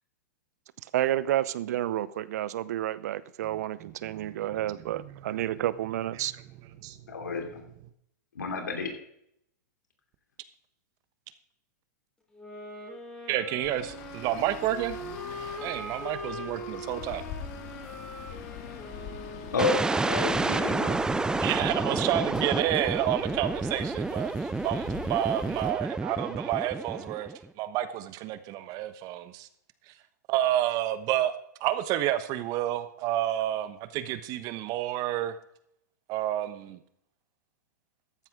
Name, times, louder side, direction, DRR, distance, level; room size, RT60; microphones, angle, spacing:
voice 1, 0.9-6.3, right 13 dB, 65° right, 18 dB, 0.7 m, -30 dB
voice 2, 3.8-4.5 4.9-5.6 6.8-7.0 13.3-15.0 15.6-17.2 21.4-29.5 29.9-30.0 30.3-31.3 31.6-35.4 36.1-36.8, right 13 dB, 40° right, 12 dB, 1.1 m, -30 dB
voice 3, 7.1-7.7 8.3-8.9 19.5-21.0, left 4 dB, 85° left, 4 dB, 3.0 m, -30 dB
sound 1, 12.3-20.2, left 1 dB, 10° left, 3.9 m, -41 dB
Traffic noise roadway noise, 13.6-25.7, left 8 dB, 45° left, 1.8 m, -43 dB
sound 2, 19.6-27.4, right 3 dB, 10° right, 0.5 m, -29 dB
14.0 x 10.5 x 3.7 m, 0.73 s
hypercardioid pair, 115°, 9 cm